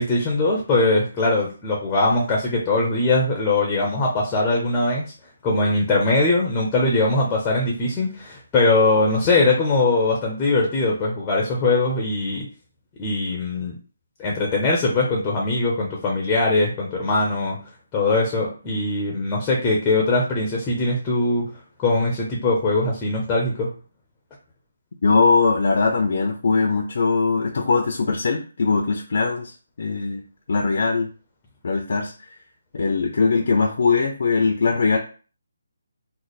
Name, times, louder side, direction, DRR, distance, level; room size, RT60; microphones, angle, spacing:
voice 1, 0.0-5.1 5.4-12.5 13.0-13.7 14.2-17.6 17.9-21.5 21.8-23.7, left 2 dB, 10° left, -1 dB, 0.6 m, -21 dB
voice 2, 25.0-29.5 29.8-30.2 30.5-31.1 31.6-32.1 32.7-35.0, left 4 dB, 55° left, 2 dB, 0.5 m, -20 dB
3.2 x 2.0 x 4.0 m, 0.37 s
hypercardioid pair, 170°, 0 cm